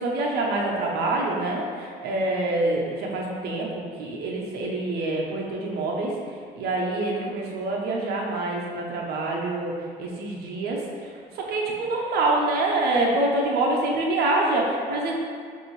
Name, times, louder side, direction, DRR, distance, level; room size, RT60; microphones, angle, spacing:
voice 1, 0.0-6.1 6.6-9.7 10.0-10.8 11.4-15.2, right 2 dB, 70° right, -1 dB, 0.7 m, -26 dB
5.2 x 2.7 x 3.1 m, 2.1 s
cardioid pair, 110°, 17 cm